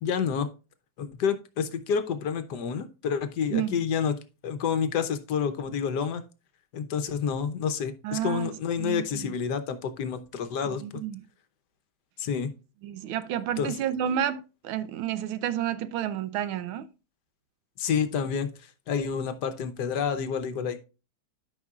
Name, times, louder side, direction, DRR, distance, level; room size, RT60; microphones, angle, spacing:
voice 1, 0.0-0.5 1.0-4.2 4.4-6.2 6.7-11.0 12.2-12.5 13.6-13.8 17.8-20.8, left 7 dB, 65° left, 1.2 m, -29 dB
voice 2, 8.0-8.5 8.8-9.3 10.8-11.2 12.8-16.9, right 10 dB, 85° right, 1.4 m, -30 dB
12.0 x 5.6 x 2.3 m
omnidirectional pair, 2.3 m